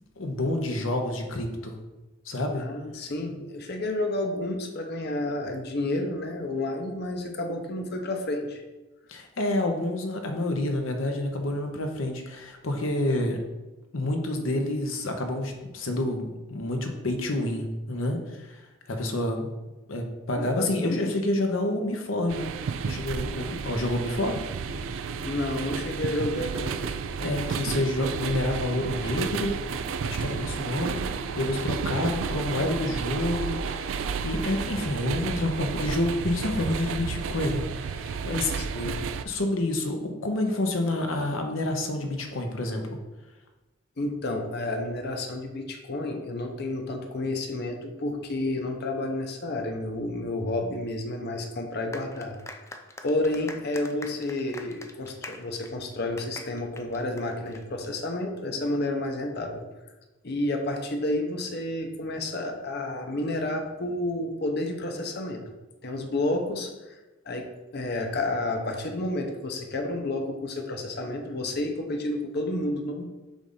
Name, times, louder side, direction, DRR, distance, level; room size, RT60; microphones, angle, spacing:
voice 1, 0.2-1.8 2.2-2.6 9.1-13.4 13.9-18.6 18.9-19.5 19.9-22.5 22.8-24.4 27.2-29.5 30.0-31.0 31.4-34.0 34.2-38.6 39.2-43.0, left 1 dB, 85° left, 3 dB, 0.9 m, -28 dB
voice 2, 2.6-8.6 20.3-21.1 25.2-26.8 38.5-39.1 44.0-52.4 53.0-59.6 60.2-65.4 65.8-67.0 67.3-73.0, left 2 dB, 55° left, 3 dB, 0.7 m, -30 dB
sound 1, 22.3-39.2, right 6 dB, 70° right, 0.3 m, -32 dB
sound 2, 24.7-31.7, right 1 dB, 35° right, 1.0 m, -44 dB
sound 3, 51.9-57.9, left 2 dB, 15° left, 0.4 m, -44 dB
7.1 x 2.6 x 5.5 m, 1.1 s
head